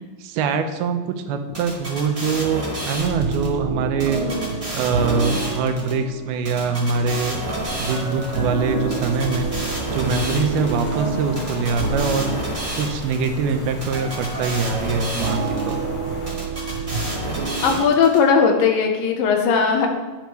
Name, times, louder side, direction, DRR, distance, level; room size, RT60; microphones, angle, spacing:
voice 1, 0.2-4.2 4.7-7.4 7.8-16.0, right 5 dB, 85° right, 7 dB, 2.7 m, -24 dB
sound 1, 1.5-3.5 4.0-5.9 6.4-8.4 8.9-10.8 11.3-13.3 13.8-15.7 16.2-18.2, right 1 dB, 30° right, 0.5 m, -31 dB
sound 2, 2.9-17.8, right 4 dB, 55° right, 2.5 m, -29 dB
voice 2, 4.1-4.5 17.6-19.9, left 6 dB, 75° left, 3 dB, 2.4 m, -18 dB
sound 3, 7.5-16.3, left 1 dB, 40° left, 4.6 m, -35 dB
10.5 x 9.9 x 3.1 m, 1.2 s
omnidirectional pair, 4.4 m